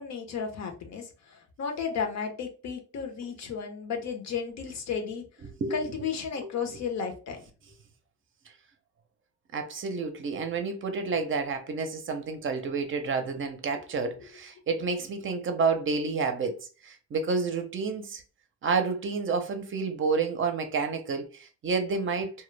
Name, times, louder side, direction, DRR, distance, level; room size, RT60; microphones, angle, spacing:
voice 1, 0.0-5.2 5.7-7.4, left 6 dB, 60° left, 0.7 m, -33 dB
voice 2, 5.6-5.9 6.4-6.5 9.5-16.6 16.8-18.2 18.6-22.3, right 4 dB, 40° right, 0.5 m, -29 dB
2.2 x 2.0 x 3.1 m
cardioid pair, 90°, 30 cm